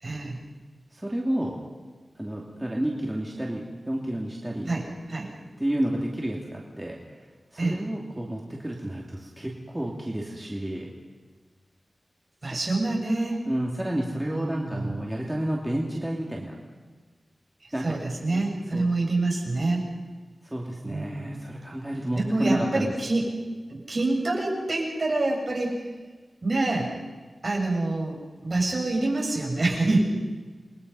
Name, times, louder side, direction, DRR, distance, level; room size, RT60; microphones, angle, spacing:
voice 1, 0.0-0.4 4.7-5.3 7.6-7.8 12.4-13.4 14.2-15.0 17.8-19.8 20.8-21.5 22.2-23.2 23.7-25.8 26.4-26.9 27.4-30.0, right 2 dB, 45° right, -1 dB, 6.5 m, -26 dB
voice 2, 0.9-1.6 2.2-4.7 5.6-7.0 7.5-10.9 12.4-12.6 13.5-16.5 17.7-17.8 18.3-18.4 18.7-18.9 20.5-22.9, right 1 dB, 15° right, -2 dB, 2.7 m, -30 dB
28.5 x 22.0 x 5.6 m, 1.4 s
wide cardioid pair, 110°, 0 cm